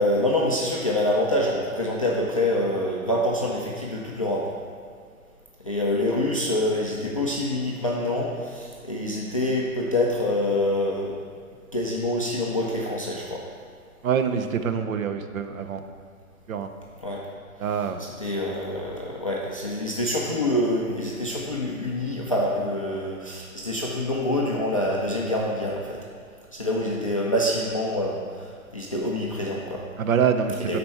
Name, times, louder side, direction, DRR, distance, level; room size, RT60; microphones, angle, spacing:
voice 1, 0.0-4.5 5.6-11.2 11.7-13.4 17.0-17.2 18.0-26.0 26.5-29.8 30.7-30.8, left 1 dB, 25° left, -4 dB, 0.3 m, -26 dB
voice 2, 14.0-15.9 16.5-16.7 17.6-18.0 30.0-30.8, right 7 dB, 70° right, 8 dB, 0.8 m, -25 dB
10.0 x 4.3 x 4.5 m, 2.1 s
hypercardioid pair, 145°, 43 cm